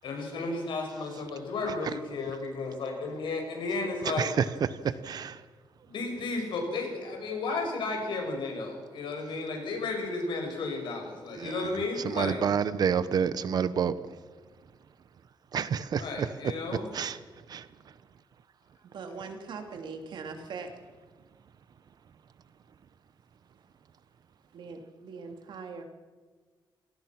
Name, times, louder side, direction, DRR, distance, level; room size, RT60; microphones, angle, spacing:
voice 1, 0.0-4.4 5.9-12.4 15.9-16.9, left 3 dB, 80° left, 6.3 m, -33 dB
voice 2, 5.0-5.4 11.4-11.5 12.2-13.9 15.5-16.3 16.9-17.2 17.5-17.6, right 7 dB, 55° right, 1.0 m, -28 dB
voice 3, 18.8-20.7 24.5-25.8, right 5 dB, 70° right, 3.1 m, -41 dB
28.0 x 18.0 x 6.1 m
wide cardioid pair, 165°, 8 cm